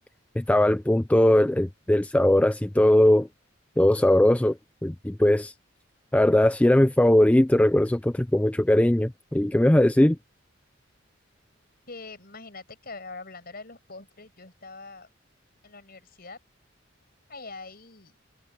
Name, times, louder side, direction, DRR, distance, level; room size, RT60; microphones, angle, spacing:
voice 1, 0.4-3.3 3.8-4.6 4.8-5.5 6.1-10.2, left 1 dB, 5° left, 0.3 m, -20 dB
voice 2, 11.9-15.1 15.6-16.4 17.3-18.1, left 3 dB, 50° left, 5.5 m, -43 dB
head